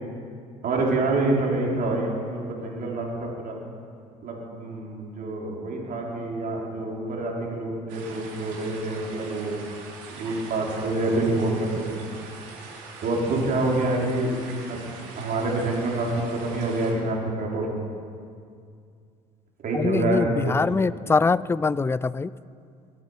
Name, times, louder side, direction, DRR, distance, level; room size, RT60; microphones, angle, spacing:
voice 1, 0.6-3.5 4.2-9.6 10.1-12.0 13.0-14.3 14.7-14.8 15.2-17.7 19.6-20.2, right 2 dB, 50° right, -2 dB, 4.2 m, -27 dB
sound 1, 7.9-16.9, right 4 dB, 75° right, 3.0 m, -43 dB
voice 2, 19.7-22.3, left 4 dB, 15° left, 19 dB, 0.4 m, -23 dB
22.0 x 9.6 x 5.8 m, 2.3 s
hypercardioid pair, 70°, 18 cm